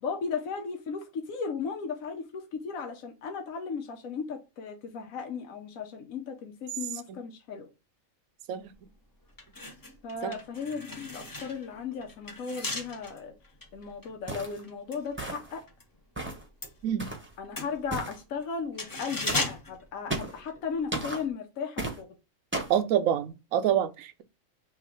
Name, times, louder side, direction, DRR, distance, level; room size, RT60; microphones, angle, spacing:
voice 1, 0.0-7.7 10.0-13.3 13.7-15.6 17.4-22.2, left 5 dB, 85° left, 1.2 m, -36 dB
sound 1, 8.7-8.9 9.3-15.9 16.2-20.8 21.1-21.3, left 2 dB, 20° left, 0.6 m, -38 dB
sound 2, 14.3-14.6 15.2-15.6 16.2-16.5 17.0-17.3 17.9-18.2 19.3-19.5 20.1-20.4 20.9-21.2 21.8-22.0 22.5-22.8, right 2 dB, 10° right, 0.8 m, -34 dB
voice 2, 22.7-24.2, right 10 dB, 80° right, 1.0 m, -26 dB
3.3 x 3.1 x 4.8 m
omnidirectional pair, 1.4 m